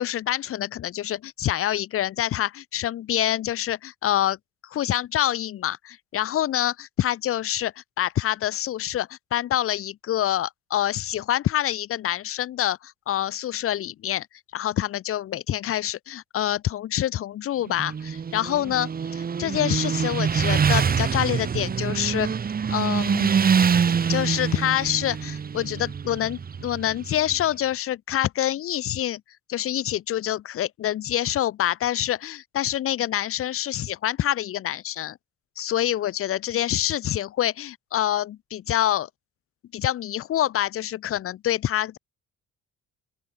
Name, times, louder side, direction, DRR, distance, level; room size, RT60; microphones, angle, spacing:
voice 1, 0.0-4.4 4.6-14.3 14.5-22.3 22.7-23.3 24.1-29.2 29.5-35.2 35.6-39.1 39.7-42.0, left 12 dB, 50° left, 0.5 m, -26 dB
Motorcycle, 17.7-27.4, right 6 dB, 30° right, 0.8 m, -25 dB
open air
cardioid pair, 90°, 30 cm